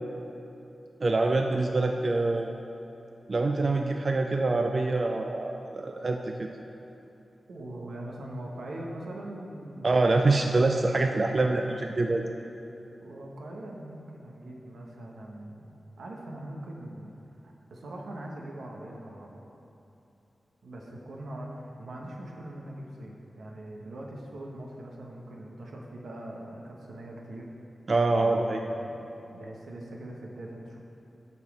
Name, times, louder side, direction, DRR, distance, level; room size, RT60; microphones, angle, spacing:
voice 1, 1.0-2.5 3.3-6.5 9.8-12.2 27.9-28.6, right 2 dB, 40° right, 3 dB, 0.4 m, -25 dB
voice 2, 7.5-10.3 13.0-15.7 16.0-19.5 20.6-27.5 28.1-30.8, right 1 dB, 85° right, -1 dB, 1.1 m, -42 dB
8.4 x 4.2 x 7.1 m, 2.8 s
wide cardioid pair, 140°, 0 cm